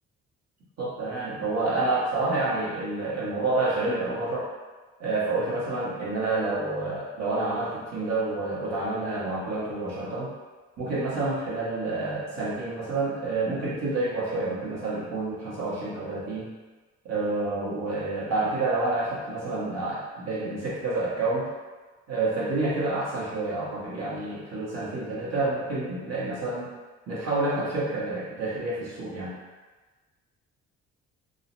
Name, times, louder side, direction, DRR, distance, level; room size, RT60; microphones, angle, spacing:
voice 1, 0.8-4.5 5.0-10.3 10.8-16.5 17.0-21.5 22.1-26.7 27.1-29.3, right 2 dB, 60° right, -8 dB, 1.3 m, -28 dB
3.8 x 2.1 x 2.6 m, 1.3 s
cardioid pair, 90°, 30 cm